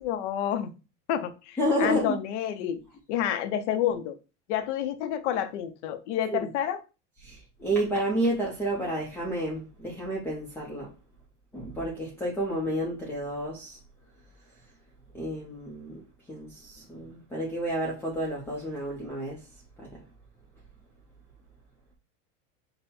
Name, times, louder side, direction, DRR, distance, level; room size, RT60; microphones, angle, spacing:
voice 1, 0.0-0.7 1.1-2.8 3.1-4.1 4.5-6.8, left 10 dB, 75° left, 0.8 m, -29 dB
voice 2, 1.6-2.1 7.2-10.9 11.5-13.8 15.1-16.0 16.3-19.4 19.8-19.9, equal, 5° left, 0.7 m, -30 dB
5.5 x 2.2 x 4.2 m
supercardioid pair, 160°, 36 cm